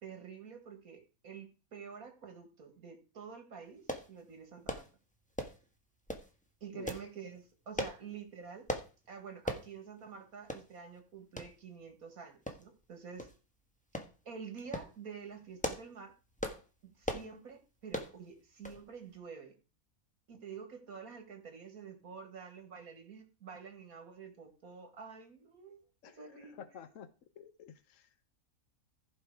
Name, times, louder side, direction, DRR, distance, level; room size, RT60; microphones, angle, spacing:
voice 1, 0.0-4.9 6.6-8.7 9.1-13.3 14.2-16.1 16.8-19.5 20.3-25.8 26.1-26.6, right 6 dB, 80° right, 6 dB, 2.4 m, -48 dB
sound 1, 3.9-4.1 4.7-4.9 5.4-5.6 6.1-6.3 6.9-7.1 7.8-8.0 8.7-8.9 9.5-9.7 10.0-10.1 10.5-10.6 11.4-11.5 12.5-12.8 13.2-13.3 13.9-14.1 14.6-14.9 15.4-15.9 16.4-16.6 17.0-17.3 17.9-18.1 18.6-18.8 19.1-19.2, equal, 5° left, 1.2 m, -38 dB
voice 2, 26.0-27.1 27.4-28.1, left 8 dB, 65° left, 10 dB, 1.2 m, -51 dB
15.0 x 5.2 x 4.9 m, 0.33 s
omnidirectional pair, 1.5 m